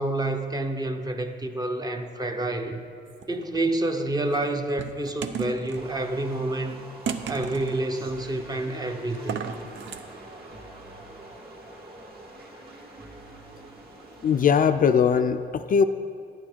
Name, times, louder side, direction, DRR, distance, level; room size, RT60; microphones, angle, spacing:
voice 1, 0.0-2.8 3.3-6.8 7.3-9.5, right 2 dB, 20° right, 6 dB, 0.8 m, -28 dB
sound 1, 3.1-3.6 4.3-5.8 7.0-7.8 9.1-10.0, right 6 dB, 70° right, 0.6 m, -34 dB
sound 2, 5.7-14.7, right 2 dB, 50° right, 2.0 m, -45 dB
voice 2, 14.2-15.8, left 7 dB, 45° left, 8 dB, 0.4 m, -20 dB
11.0 x 8.9 x 4.4 m, 2.4 s
cardioid pair, 90°, 20 cm